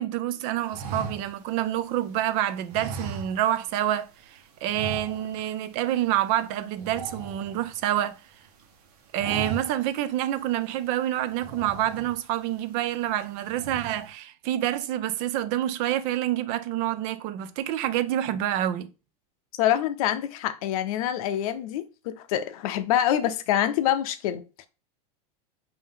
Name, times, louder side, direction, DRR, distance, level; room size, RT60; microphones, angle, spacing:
voice 1, 0.0-8.2 9.1-18.9, right 12 dB, 40° right, 0.4 m, -27 dB
sound 1, 0.7-2.2 2.7-3.8 4.1-4.2 4.7-5.6 5.8-6.0 6.3-8.1 8.5-8.8 9.1-10.0 10.4-10.5 11.3-12.4 12.9-13.2 13.5-14.1, right 4 dB, 70° right, 1.1 m, -37 dB
voice 2, 19.6-24.7, left 11 dB, 60° left, 0.6 m, -26 dB
5.4 x 2.7 x 3.6 m
supercardioid pair, 165°, 20 cm